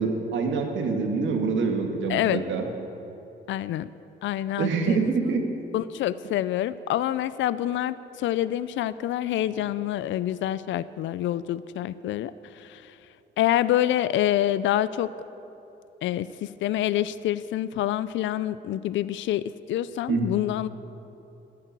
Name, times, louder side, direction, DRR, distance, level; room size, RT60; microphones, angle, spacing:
voice 1, 0.0-2.6 4.6-5.4 20.1-20.3, right 4 dB, 70° right, 3 dB, 2.1 m, -25 dB
voice 2, 2.1-2.4 3.5-3.9 4.2-5.1 5.7-12.9 13.4-15.1 16.0-19.4 19.7-20.7, left 12 dB, 75° left, 16 dB, 0.5 m, -27 dB
14.0 x 11.0 x 8.2 m, 2.9 s
cardioid pair, 90°, 20 cm